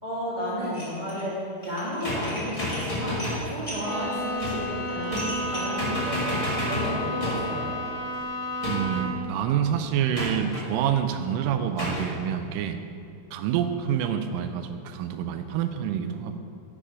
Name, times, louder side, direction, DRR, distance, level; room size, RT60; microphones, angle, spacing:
voice 1, 0.0-1.4 1.6-7.7, equal, 25° right, -9 dB, 1.0 m, -32 dB
Dishes pots and pans, 0.6-1.2 1.6-5.8, left 1 dB, 50° left, 0.5 m, -39 dB
sound 1, 2.0-3.5 4.4-4.7 5.1-5.5 5.8-7.6 8.6-9.1 10.1-10.7 11.8-12.1, left 1 dB, 15° left, 1.2 m, -31 dB
Bowed string instrument, 3.8-9.3, equal, 75° left, 0.9 m, -32 dB
voice 2, 8.6-12.8 13.3-16.4, right 9 dB, 85° right, 8 dB, 2.1 m, -27 dB
10.0 x 5.0 x 4.9 m, 2.6 s
omnidirectional pair, 3.8 m